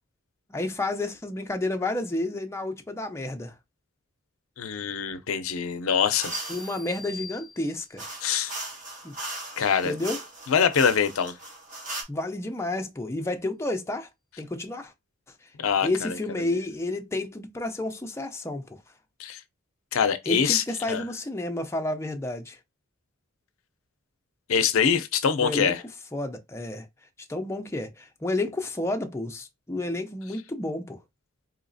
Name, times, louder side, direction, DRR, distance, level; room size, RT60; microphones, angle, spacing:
voice 1, 0.5-3.5 6.5-8.1 9.0-9.1 9.8-10.2 12.1-14.1 14.4-14.9 15.8-18.7 20.3-22.6 25.4-25.7 26.1-26.9 27.3-31.0, left 2 dB, 15° left, 0.5 m, -30 dB
voice 2, 4.6-6.4 8.2-8.5 9.6-9.9 10.5-11.3 15.6-16.2 16.5-16.6 19.2-19.4 19.9-21.0 24.5-25.8, left 7 dB, 85° left, 0.5 m, -24 dB
sound 1, 6.2-6.7 8.0-12.0, right 2 dB, 40° right, 1.5 m, -38 dB
sound 2, 6.3-8.1, left 1 dB, 15° right, 1.0 m, -41 dB
4.0 x 2.8 x 2.6 m
head